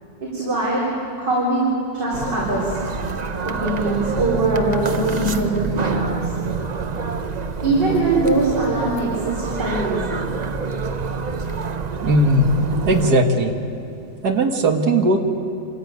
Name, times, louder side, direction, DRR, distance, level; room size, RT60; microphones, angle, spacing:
voice 1, 0.2-0.9 1.2-1.6 1.9-2.8 3.4-6.3 7.6-10.3, right 2 dB, 85° right, -6 dB, 4.3 m, -22 dB
sound 1, 2.1-13.1, right 4 dB, 50° right, 0.5 m, -27 dB
voice 2, 12.0-12.5 12.9-13.6 14.2-15.2, right 1 dB, 65° right, 5 dB, 2.1 m, -17 dB
26.0 x 14.5 x 9.4 m, 2.7 s
omnidirectional pair, 1.8 m